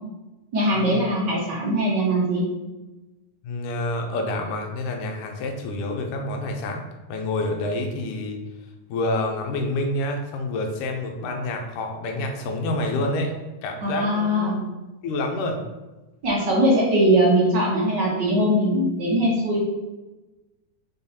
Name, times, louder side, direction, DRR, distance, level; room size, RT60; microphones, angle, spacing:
voice 1, 0.5-2.4 13.8-14.6 16.2-19.6, right 1 dB, 60° right, -4 dB, 1.1 m, -21 dB
voice 2, 3.4-6.8 7.1-8.4 8.9-13.3 13.6-14.5 15.0-15.6, left 2 dB, 85° left, 3 dB, 2.3 m, -28 dB
5.7 x 4.2 x 4.1 m, 1.1 s
omnidirectional pair, 3.6 m